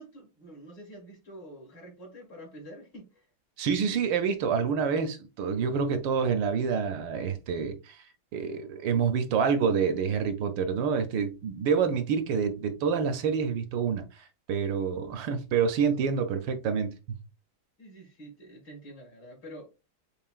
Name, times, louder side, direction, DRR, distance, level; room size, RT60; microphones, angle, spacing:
voice 1, 0.0-3.2 17.8-19.7, right 1 dB, 60° left, 2.8 m, -47 dB
voice 2, 3.6-8.1 8.3-17.0, right 6 dB, 75° right, 1.3 m, -27 dB
6.7 x 2.9 x 2.4 m
omnidirectional pair, 2.2 m